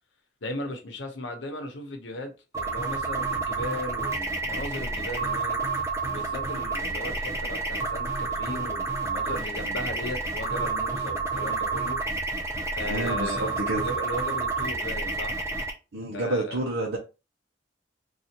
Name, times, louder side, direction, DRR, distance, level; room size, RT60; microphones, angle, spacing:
voice 1, 0.4-5.6 6.0-12.0 12.7-15.3 16.1-16.6, left 1 dB, 80° left, 0.9 m, -37 dB
sound 1, 2.5-15.7, right 3 dB, 15° right, 0.5 m, -29 dB
voice 2, 12.9-13.9 15.9-17.0, right 1 dB, 80° right, 0.8 m, -29 dB
4.0 x 2.5 x 2.9 m
head